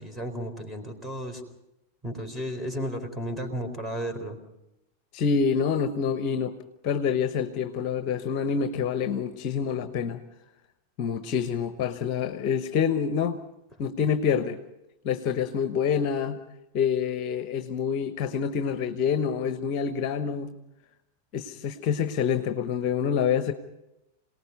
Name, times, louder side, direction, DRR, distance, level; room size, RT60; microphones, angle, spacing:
voice 1, 0.0-1.4 2.0-4.4, equal, 5° right, 5 dB, 4.4 m, -33 dB
voice 2, 5.1-6.6 6.8-10.2 11.0-13.4 13.8-14.6 15.0-16.4 16.7-20.5 21.3-23.5, left 7 dB, 40° left, 9 dB, 1.1 m, -27 dB
27.5 x 19.0 x 5.5 m, 0.89 s
figure-of-eight pair, 90°, 0 cm